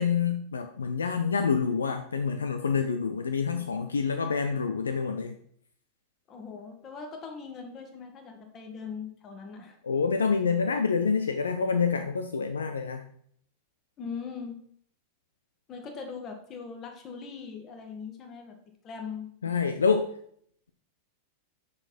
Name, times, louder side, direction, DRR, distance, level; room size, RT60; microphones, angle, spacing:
voice 1, 0.0-5.4 9.8-13.0 19.4-20.1, left 5 dB, 70° left, 8 dB, 0.5 m, -27 dB
voice 2, 6.3-9.8 14.0-14.6 15.7-18.6 18.8-19.7, left 5 dB, 30° left, 4 dB, 1.6 m, -40 dB
6.4 x 6.0 x 4.4 m, 0.64 s
figure-of-eight pair, 90°, 0 cm